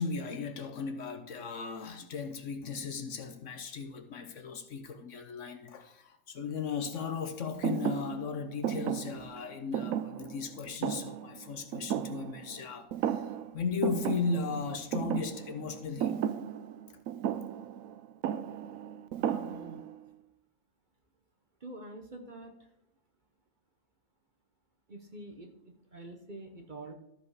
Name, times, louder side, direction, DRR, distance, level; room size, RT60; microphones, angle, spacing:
voice 1, 0.0-16.2, left 5 dB, 60° left, 1.2 m, -36 dB
Thump thud, 7.6-12.6 12.9-13.5 13.8-19.9, right 10 dB, 75° right, 1.0 m, -35 dB
voice 2, 19.2-19.8 21.6-22.6 24.9-26.9, right 2 dB, 40° right, 1.0 m, -46 dB
13.5 x 5.1 x 4.8 m
omnidirectional pair, 1.5 m